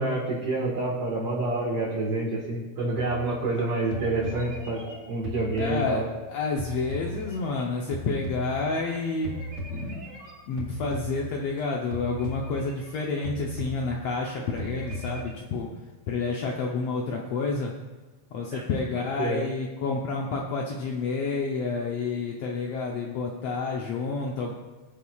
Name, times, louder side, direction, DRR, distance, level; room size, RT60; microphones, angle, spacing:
voice 1, 0.0-6.1 18.5-18.6 19.2-19.4, right 2 dB, 55° right, -5 dB, 2.4 m, -28 dB
sound 1, 3.0-3.6 3.9-6.3 6.6-8.9 9.2-11.6 11.9-13.0 13.2-14.3 14.6-15.3, right 1 dB, 30° right, 2.8 m, -36 dB
voice 2, 5.6-6.0 6.3-9.4 9.7-10.0 10.5-15.7 16.1-17.7 18.3-24.5, left 4 dB, 70° left, -1 dB, 1.7 m, -29 dB
20.5 x 6.9 x 2.3 m, 1.2 s
omnidirectional pair, 3.3 m